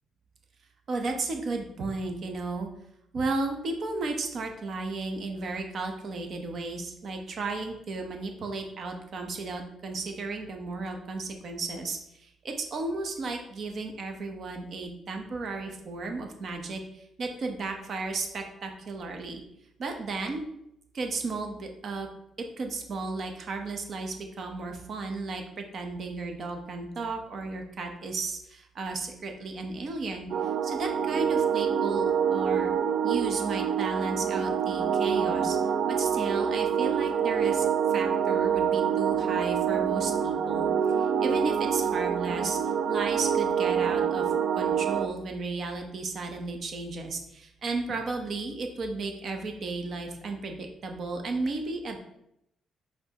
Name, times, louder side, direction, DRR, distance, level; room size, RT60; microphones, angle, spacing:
voice 1, 0.9-2.7 3.1-19.4 19.8-20.4 20.9-22.1 22.6-32.7 33.0-35.6 35.9-40.7 41.0-42.6 42.9-52.0, right 3 dB, 55° right, 3 dB, 0.8 m, -34 dB
sound 1, 30.3-45.1, right 8 dB, 70° right, 0.3 m, -26 dB
5.3 x 3.5 x 2.9 m, 0.79 s
cardioid pair, 90°, 0 cm